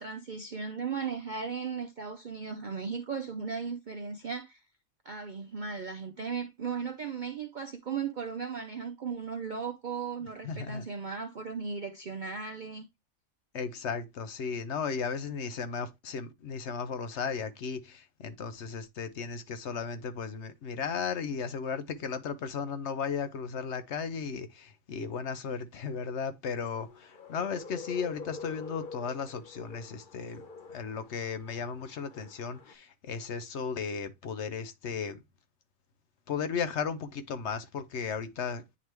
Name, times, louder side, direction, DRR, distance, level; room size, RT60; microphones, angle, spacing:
voice 1, 0.0-4.6 5.0-12.9, right 5 dB, 55° right, 0.5 m, -36 dB
voice 2, 10.4-10.8 13.5-35.2 36.3-38.8, left 6 dB, 60° left, 0.9 m, -35 dB
sound 1, 26.6-32.7, left 4 dB, 40° left, 1.1 m, -46 dB
9.6 x 3.4 x 3.0 m
omnidirectional pair, 1.4 m